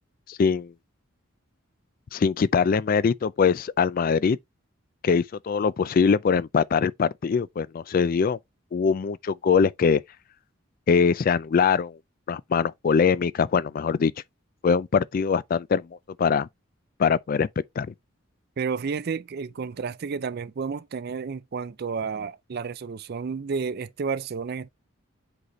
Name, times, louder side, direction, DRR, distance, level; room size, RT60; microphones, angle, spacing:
voice 1, 0.3-0.7 2.1-4.4 5.0-8.4 8.7-10.0 10.9-12.0 12.3-14.1 14.6-15.9 16.2-16.5 17.0-17.5 17.8-17.9, left 6 dB, 40° left, 0.3 m, -22 dB
voice 2, 18.6-24.7, right 5 dB, 50° right, 0.4 m, -31 dB
7.8 x 4.1 x 3.1 m
head